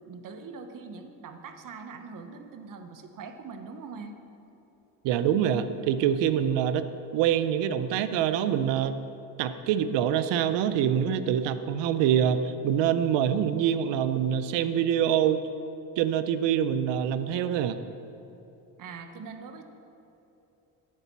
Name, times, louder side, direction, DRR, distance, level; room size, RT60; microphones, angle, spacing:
voice 1, 0.0-4.2 18.8-19.6, right 4 dB, 50° right, 7 dB, 0.9 m, -42 dB
voice 2, 5.0-6.8 7.1-9.0 9.4-15.4 16.0-17.8, right 9 dB, 85° right, 11 dB, 0.6 m, -25 dB
9.9 x 4.1 x 7.2 m, 2.9 s
cardioid pair, 90°, 43 cm